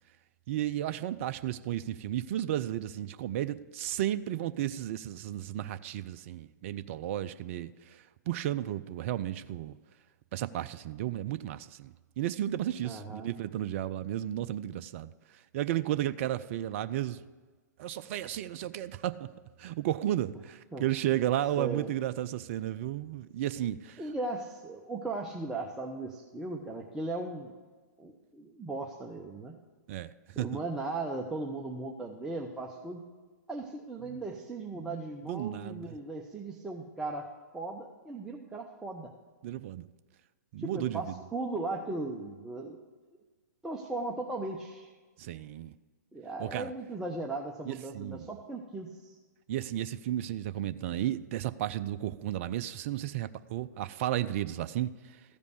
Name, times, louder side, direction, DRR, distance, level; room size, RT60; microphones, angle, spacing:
voice 1, 0.5-9.7 10.3-17.2 17.8-19.3 19.6-24.0 29.9-30.6 34.0-34.2 34.7-36.0 39.4-39.8 40.5-41.2 45.2-45.7 46.4-46.7 47.6-48.3 49.5-55.2, right 12 dB, 45° right, 0.4 m, -33 dB
voice 2, 12.8-13.3 20.7-20.9 21.6-21.9 24.0-27.5 28.0-29.5 30.4-33.0 33.5-37.3 37.5-39.1 40.6-42.8 43.6-44.9 46.1-49.2, right 2 dB, 5° right, 0.8 m, -37 dB
14.0 x 5.1 x 8.3 m
figure-of-eight pair, 115°, 10 cm